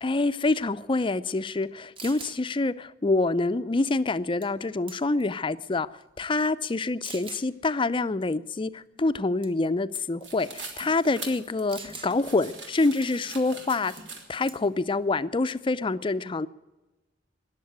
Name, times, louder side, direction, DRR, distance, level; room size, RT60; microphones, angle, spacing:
voice 1, 0.0-5.9 6.2-13.9 14.3-16.5, left 3 dB, 30° left, 0.5 m, -26 dB
sound 1, 1.6-1.7 2.0-2.4 4.4-4.6 4.9-5.3 6.0-6.1 7.0-7.5 9.4-9.7 10.0-10.2 11.7-12.1 14.0-14.2 14.5-14.8, right 4 dB, 30° right, 1.3 m, -42 dB
sound 2, 10.2-14.6, right 3 dB, 80° right, 3.3 m, -42 dB
20.5 x 7.4 x 9.4 m
head